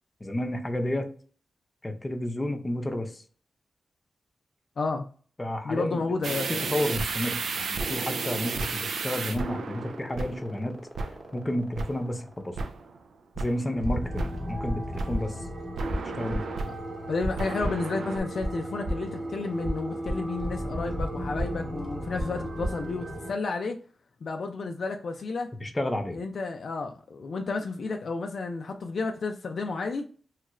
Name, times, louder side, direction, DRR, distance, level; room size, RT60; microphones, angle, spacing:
voice 1, 0.2-1.1 1.8-3.2 5.4-6.0 6.7-10.8 11.3-12.6 13.4-15.4 16.2-16.4 25.6-26.2, left 1 dB, 25° left, 0.6 m, -31 dB
voice 2, 5.6-6.7 16.7-16.8 17.1-23.8 24.2-25.5 26.1-30.1, left 3 dB, 70° left, 0.3 m, -31 dB
sound 1, 6.2-10.7 11.0-11.4 11.8-12.2 12.6-13.1 13.4-13.9 14.2-14.6 15.0-17.0 17.4-18.2, right 4 dB, 85° right, 0.3 m, -33 dB
sound 2, 7.1-12.9, equal, 5° right, 0.9 m, -44 dB
sound 3, 13.6-23.3, equal, 55° right, 1.0 m, -33 dB
3.1 x 2.4 x 2.9 m
wide cardioid pair, 90°, 0 cm